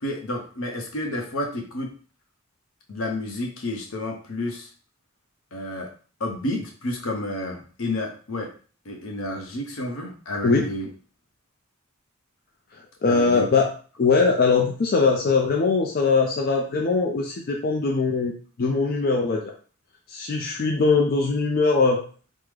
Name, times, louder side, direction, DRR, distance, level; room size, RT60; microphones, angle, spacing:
voice 1, 0.0-1.9 2.9-4.7 5.5-5.9 6.2-8.5 8.8-10.9 13.1-13.5, left 1 dB, 70° left, 2 dB, 0.7 m, -30 dB
voice 2, 12.7-13.6 14.0-18.3 18.6-19.5 20.1-22.0, left 4 dB, 45° left, 1 dB, 0.4 m, -21 dB
3.6 x 2.0 x 3.2 m, 0.39 s
head